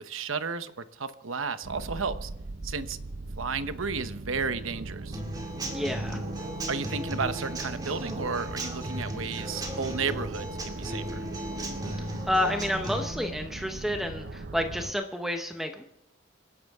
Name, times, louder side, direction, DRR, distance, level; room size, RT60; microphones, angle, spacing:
voice 1, 0.0-2.3 2.6-3.0 3.4-5.2 6.7-11.3, right 5 dB, 90° right, 11 dB, 1.0 m, -33 dB
sound 1, 1.6-14.9, right 2 dB, 55° right, 0.7 m, -39 dB
Human voice / Acoustic guitar / Drum, 5.1-13.1, right 1 dB, 20° right, 2.3 m, -37 dB
voice 2, 5.7-6.2 12.3-15.8, left 1 dB, ahead, 4 dB, 0.9 m, -30 dB
27.0 x 11.0 x 3.6 m, 0.90 s
head